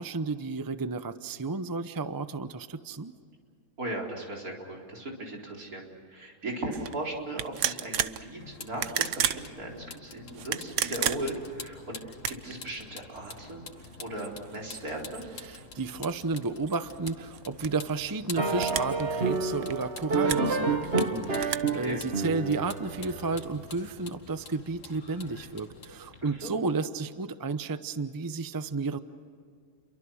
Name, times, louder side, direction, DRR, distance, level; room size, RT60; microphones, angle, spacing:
voice 1, 0.0-3.1 15.4-29.0, right 3 dB, 20° right, 11 dB, 0.6 m, -32 dB
voice 2, 3.8-15.2 21.7-22.0 26.2-26.6, right 1 dB, 85° right, -1 dB, 4.7 m, -37 dB
sound 1, 6.7-6.9 7.4-8.2 8.7-9.4 10.3-11.5 12.1-12.6 13.2-13.3 13.8-15.9 16.3-17.9 18.6-19.0 19.3-20.5 21.0-21.6, right 9 dB, 60° right, 1.1 m, -32 dB
Vehicle, 8.4-26.4, left 4 dB, 60° left, 2.0 m, -47 dB
sound 2, 18.4-23.6, right 3 dB, 45° right, 1.7 m, -29 dB
30.0 x 23.5 x 6.4 m, 2.1 s
omnidirectional pair, 1.5 m